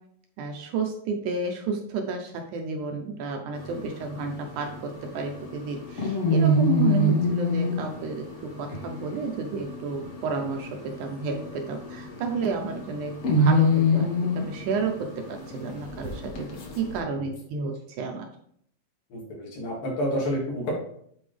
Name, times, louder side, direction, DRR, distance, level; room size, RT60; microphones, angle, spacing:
voice 1, 0.4-16.5 16.8-18.3, right 4 dB, 75° right, 3 dB, 1.9 m, -31 dB
sound 1, 3.5-17.0, left 1 dB, 50° left, 2.1 m, -27 dB
voice 2, 19.1-20.7, equal, 80° left, -5 dB, 4.1 m, -29 dB
9.0 x 4.4 x 3.3 m, 0.66 s
omnidirectional pair, 4.0 m